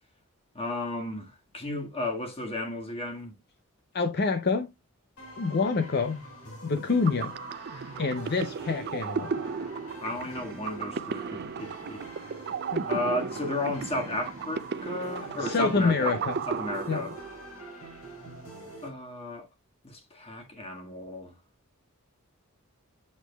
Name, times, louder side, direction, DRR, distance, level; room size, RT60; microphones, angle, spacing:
voice 1, 0.5-3.3 10.0-12.3 12.8-16.2 16.5-17.1 18.8-19.5 19.8-21.3, left 2 dB, 30° left, 1.7 m, -34 dB
voice 2, 3.9-4.7 5.4-6.2 6.6-7.3 8.0-9.3 12.7-12.9 15.4-16.4 16.9-17.1, left 4 dB, 50° left, 0.6 m, -27 dB
sound 1, 5.2-18.9, right 1 dB, 70° left, 3.8 m, -45 dB
sound 2, 6.8-17.6, right 5 dB, 50° right, 0.5 m, -35 dB
8.1 x 6.3 x 2.3 m
head